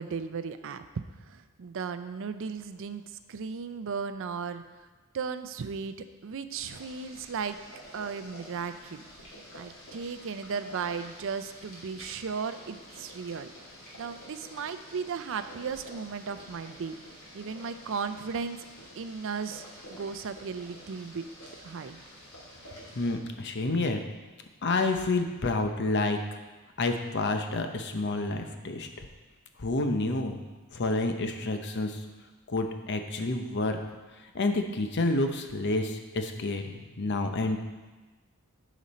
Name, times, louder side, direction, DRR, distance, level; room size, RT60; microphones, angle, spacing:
voice 1, 0.0-3.0 3.3-4.9 5.1-6.0 6.2-7.6 7.9-9.0 9.5-13.5 13.9-18.7 19.0-21.2 21.6-22.0, right 5 dB, 60° right, 10 dB, 0.5 m, -36 dB
Boiling, 6.5-23.1, equal, 80° left, 2.7 m, -49 dB
voice 2, 23.0-24.0 24.6-26.2 26.8-28.9 29.6-30.4 30.7-32.0 32.5-33.8 34.3-37.6, left 2 dB, 50° left, 6 dB, 0.8 m, -29 dB
11.0 x 5.1 x 4.2 m, 1.2 s
head